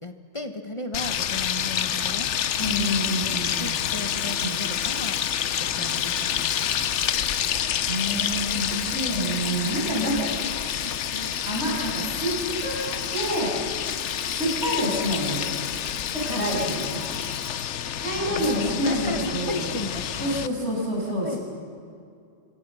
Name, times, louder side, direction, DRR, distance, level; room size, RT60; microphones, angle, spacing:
voice 1, 0.0-2.3 3.2-5.2 5.6-6.9 9.3-9.7 10.8-11.4 18.1-20.4 21.2-21.4, left 2 dB, 30° left, 6 dB, 1.4 m, -36 dB
sound 1, 0.9-20.5, left 9 dB, 90° left, 1.1 m, -28 dB
Cricket, 2.5-17.9, left 1 dB, 50° left, 5.2 m, -45 dB
voice 2, 2.5-3.7 4.4-4.6 5.7-5.9 7.8-10.3 10.6-10.9 11.4-12.8 13.1-13.5 14.3-15.5 16.1-17.0 17.9-19.6 20.2-21.4, equal, 75° right, -3 dB, 7.8 m, -28 dB
26.5 x 24.0 x 6.4 m, 2.4 s
omnidirectional pair, 1.2 m